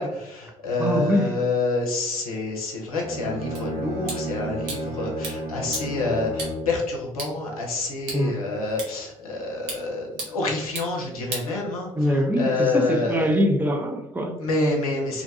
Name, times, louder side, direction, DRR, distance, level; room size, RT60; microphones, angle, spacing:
voice 1, 0.0-13.3 14.4-15.2, left 3 dB, 85° left, -1 dB, 0.6 m, -27 dB
voice 2, 0.8-1.3 8.1-8.4 12.0-14.3, equal, 10° right, 3 dB, 0.5 m, -23 dB
Bowed string instrument, 3.0-6.8, right 1 dB, 45° right, 1.1 m, -32 dB
sound 1, 3.6-12.2, right 2 dB, 65° right, 0.9 m, -39 dB
2.6 x 2.2 x 2.6 m, 0.94 s
figure-of-eight pair, 50°, 18 cm